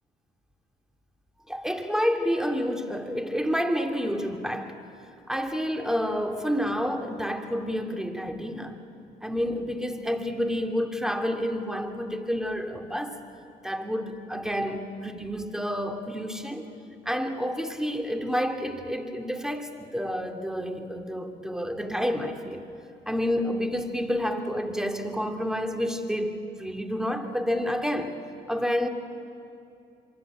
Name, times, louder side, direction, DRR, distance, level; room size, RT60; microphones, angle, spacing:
voice 1, 1.5-4.8 5.3-8.8 9.2-13.2 13.6-16.7 17.1-22.7 23.1-28.2 28.5-28.9, equal, 5° right, 5 dB, 2.5 m, -29 dB
27.0 x 23.5 x 8.8 m, 2.6 s
supercardioid pair, 60°, 20 cm